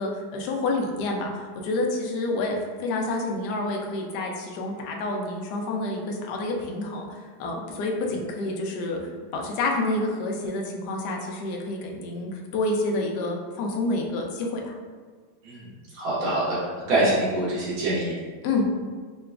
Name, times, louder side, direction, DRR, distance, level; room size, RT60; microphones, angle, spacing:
voice 1, 0.0-9.0 9.3-14.7 18.4-18.7, left 2 dB, 85° left, 0 dB, 0.9 m, -28 dB
voice 2, 15.9-18.4, right 1 dB, 60° right, -9 dB, 2.0 m, -25 dB
5.7 x 2.2 x 2.3 m, 1.5 s
omnidirectional pair, 2.4 m